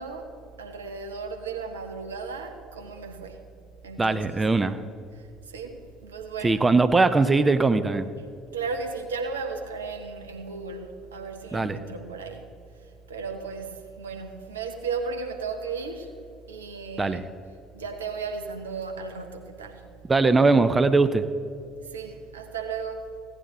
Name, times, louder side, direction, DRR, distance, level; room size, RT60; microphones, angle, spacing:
voice 1, 0.0-3.4 3.8-4.4 5.1-6.7 8.5-12.5 12.8-16.1 16.5-17.3 17.7-19.9 21.8-23.1, right 4 dB, 80° right, 5 dB, 0.9 m, -35 dB
voice 2, 4.0-4.8 6.4-8.1 11.5-11.8 17.0-17.2 20.1-21.2, right 3 dB, 20° right, 11 dB, 0.5 m, -20 dB
16.5 x 9.9 x 3.1 m, 2.4 s
figure-of-eight pair, 55°, 0 cm